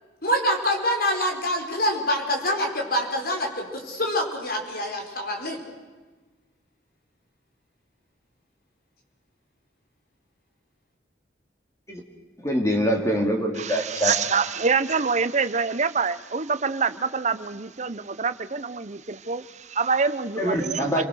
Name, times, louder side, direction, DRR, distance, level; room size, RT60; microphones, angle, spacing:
voice 1, 0.2-5.6, equal, 55° left, 2 dB, 4.5 m, -25 dB
voice 2, 12.4-14.1 20.4-21.0, equal, 15° left, 2 dB, 3.0 m, -24 dB
voice 3, 13.5-21.0, right 5 dB, 40° right, 13 dB, 0.9 m, -26 dB
30.0 x 23.0 x 6.4 m, 1.3 s
head